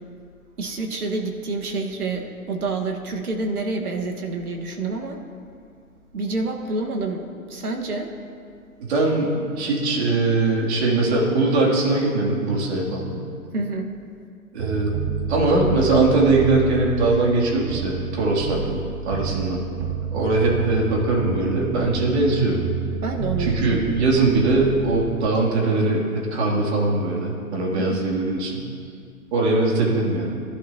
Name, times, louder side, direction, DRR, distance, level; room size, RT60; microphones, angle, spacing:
voice 1, 0.6-5.2 6.1-8.1 13.5-13.9 19.3-19.6 23.0-23.9 27.8-28.0, right 3 dB, 80° right, 2 dB, 1.9 m, -28 dB
voice 2, 8.9-13.2 14.5-14.9 15.3-18.8 19.1-19.6 20.1-22.6 23.4-28.7 29.3-30.3, right 2 dB, 45° right, -2 dB, 3.2 m, -21 dB
sound 1, 14.6-25.2, right 6 dB, 25° right, 1.3 m, -30 dB
19.5 x 12.0 x 3.0 m, 2.3 s
hypercardioid pair, 135°, 44 cm